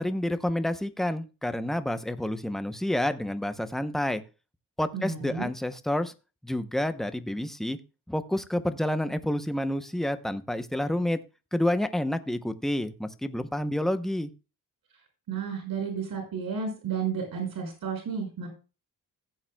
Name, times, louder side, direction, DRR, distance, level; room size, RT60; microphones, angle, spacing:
voice 1, 0.0-4.2 4.8-6.1 6.4-7.8 8.1-11.2 11.5-14.3, left 1 dB, ahead, 11 dB, 0.7 m, -29 dB
voice 2, 4.9-5.5 15.3-18.5, right 6 dB, 75° right, 2 dB, 5.7 m, -32 dB
16.0 x 8.7 x 2.2 m, 0.31 s
wide cardioid pair, 135°, 36 cm